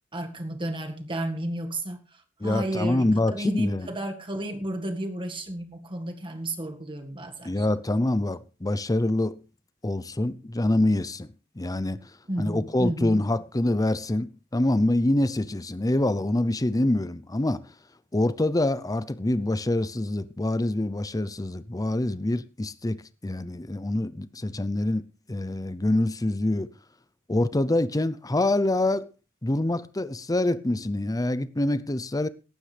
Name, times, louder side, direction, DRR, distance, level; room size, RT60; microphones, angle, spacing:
voice 1, 0.1-7.7 12.3-13.2, right 1 dB, 25° right, 1.8 m, -32 dB
voice 2, 2.4-3.9 7.4-9.4 9.8-12.1 12.4-17.6 18.1-25.0 25.3-26.7 27.3-29.0 29.4-32.3, left 1 dB, 15° left, 0.6 m, -25 dB
17.5 x 12.0 x 3.4 m
head